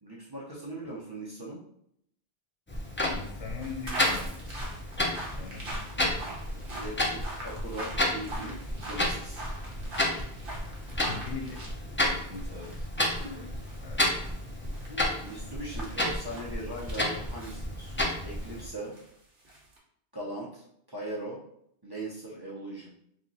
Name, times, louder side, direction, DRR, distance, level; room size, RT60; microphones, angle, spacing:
voice 1, 0.0-1.6 5.9-6.1 6.6-8.6 8.8-9.4 12.0-12.9 15.2-19.0 20.1-21.4 21.8-22.9, right 1 dB, 25° right, -6 dB, 0.7 m, -40 dB
Clock, 2.7-18.7, left 1 dB, 20° left, 0.3 m, -32 dB
voice 2, 3.0-4.8 5.0-6.7 11.0-11.6 13.8-14.1, left 5 dB, 85° left, 2 dB, 1.0 m, -42 dB
sound 1, 3.6-12.8 13.1-17.0 17.3-19.8, right 1 dB, 55° right, 1.1 m, -42 dB
sound 2, 10.1-10.3 10.9-12.2 12.8-13.5 14.5-14.6 14.9-15.4, left 1 dB, 35° left, 0.9 m, -47 dB
2.9 x 2.5 x 3.9 m, 0.71 s
omnidirectional pair, 1.1 m